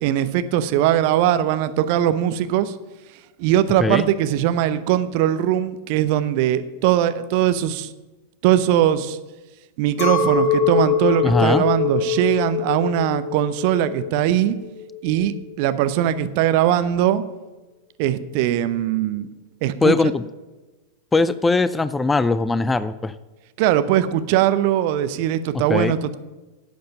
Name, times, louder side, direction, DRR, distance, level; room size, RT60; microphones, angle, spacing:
voice 1, 0.0-2.7 3.4-7.9 8.4-9.2 9.8-14.6 15.0-17.2 18.0-19.3 19.6-19.9 23.6-26.2, right 11 dB, 45° right, 12 dB, 0.6 m, -20 dB
Chink clink, 10.0-15.5, left 6 dB, 45° left, 1.8 m, -23 dB
voice 2, 11.2-11.6 19.8-20.2 21.1-23.1 25.7-25.9, left 3 dB, 10° left, 16 dB, 0.4 m, -20 dB
12.0 x 7.9 x 5.6 m, 1.1 s
figure-of-eight pair, 90°, 0 cm